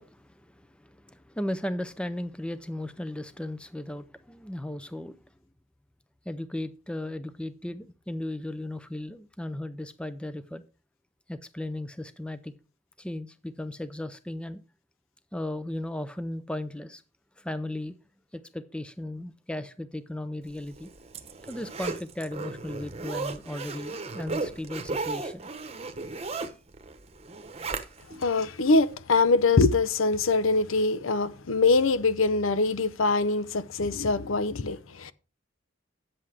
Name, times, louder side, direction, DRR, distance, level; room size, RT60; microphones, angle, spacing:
voice 1, 0.0-5.2 6.3-10.6 11.3-12.5 13.0-14.6 15.3-17.0 17.4-17.9 18.3-20.9 21.5-25.4 27.8-28.1, left 1 dB, 5° left, 0.5 m, -36 dB
Zipper (clothing), 20.6-28.2 28.7-28.8, right 3 dB, 30° right, 0.9 m, -35 dB
voice 2, 28.2-35.1, left 3 dB, 85° left, 0.7 m, -23 dB
9.5 x 7.8 x 4.9 m
head